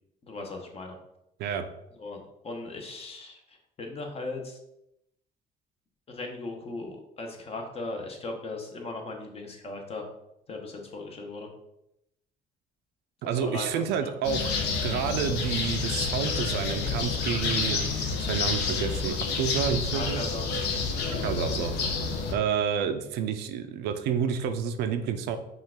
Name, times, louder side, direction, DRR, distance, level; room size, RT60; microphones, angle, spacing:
voice 1, 0.2-0.9 2.0-4.6 6.1-10.1 10.5-11.5 13.2-14.1 19.9-20.5, left 2 dB, 35° left, 3 dB, 0.9 m, -38 dB
voice 2, 13.2-14.5 14.8-20.2 21.2-21.7 22.3-25.4, right 7 dB, 85° right, 8 dB, 0.5 m, -29 dB
sound 1, 14.2-22.3, left 4 dB, 80° left, 0.8 m, -29 dB
5.4 x 2.5 x 3.6 m, 0.83 s
cardioid pair, 110°, 17 cm